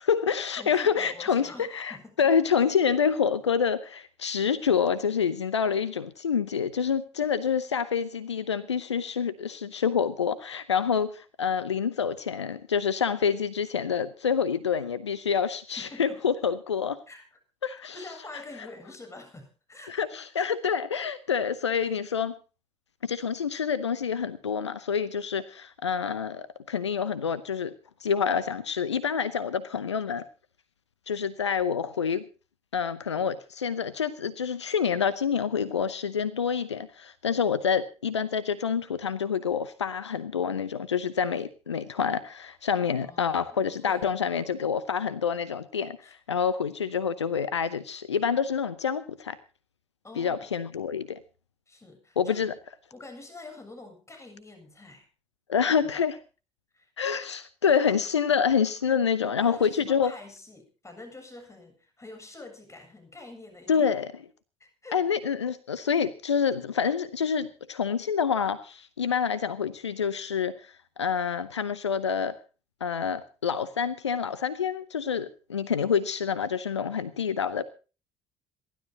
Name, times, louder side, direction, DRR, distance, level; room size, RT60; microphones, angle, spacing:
voice 1, 0.0-17.0 17.6-17.9 19.9-22.3 23.0-27.7 28.0-30.2 31.1-32.2 32.7-49.4 50.2-51.2 52.2-52.5 55.5-56.2 57.0-60.1 63.7-64.1 64.9-72.3 72.8-77.6, left 7 dB, 85° left, 17 dB, 0.7 m, -27 dB
voice 2, 0.6-2.3 15.8-16.2 17.1-17.4 17.9-20.2 43.0-44.6 46.0-46.1 50.0-50.5 51.7-52.4 52.9-55.1 55.8-56.0 56.7-56.9 58.9-63.9 64.6-65.0, left 2 dB, 20° left, 6 dB, 7.6 m, -47 dB
27.5 x 12.5 x 2.9 m, 0.34 s
figure-of-eight pair, 50°, 14 cm